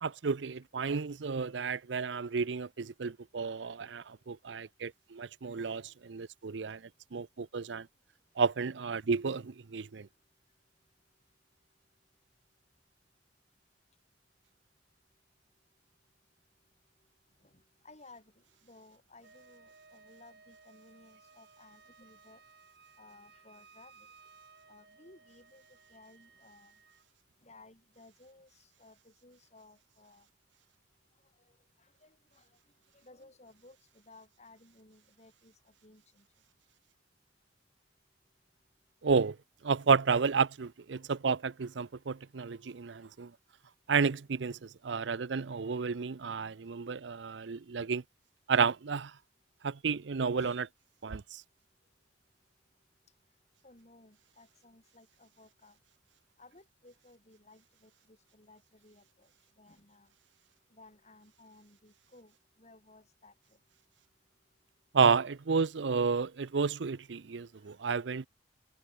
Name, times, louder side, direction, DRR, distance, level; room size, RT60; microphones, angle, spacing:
voice 1, 0.0-6.8 7.1-7.9 8.4-10.1 39.0-39.4 39.6-43.3 43.9-48.0 48.5-49.1 49.6-50.6 51.0-51.4 64.9-68.3, right 5 dB, 80° right, 0.6 m, -31 dB
voice 2, 17.4-22.4 23.0-24.1 24.7-26.8 27.4-30.3 31.2-32.6 32.9-36.3 50.3-50.6 53.6-55.8 56.4-60.1 60.7-63.6 67.4-67.7, left 2 dB, 40° left, 5.7 m, -59 dB
Wind instrument woodwind instrument, 19.2-27.1, right 4 dB, 60° right, 6.4 m, -60 dB
head